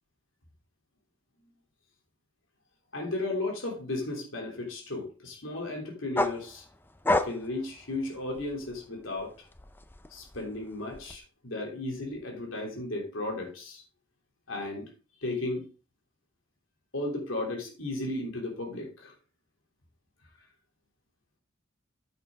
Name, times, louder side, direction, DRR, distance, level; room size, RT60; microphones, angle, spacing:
voice 1, 2.9-6.6 7.2-9.5 10.1-13.8 14.5-14.9 15.2-15.7 16.9-19.1, left 2 dB, 70° left, 3.2 m, -34 dB
sound 1, 6.2-8.8 9.2-11.2, left 1 dB, 10° left, 0.5 m, -31 dB
9.2 x 7.9 x 3.6 m
head